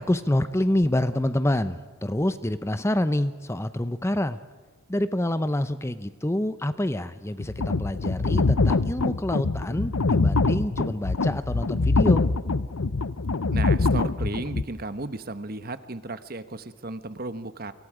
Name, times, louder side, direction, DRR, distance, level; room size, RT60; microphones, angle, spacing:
voice 1, 0.0-4.4 4.9-12.2, left 1 dB, 15° left, 12 dB, 0.7 m, -27 dB
sound 1, 7.4-14.6, left 3 dB, 90° left, 0.8 m, -24 dB
voice 2, 13.5-17.7, right 2 dB, 45° right, 11 dB, 1.1 m, -34 dB
29.0 x 24.5 x 5.0 m, 1.4 s
head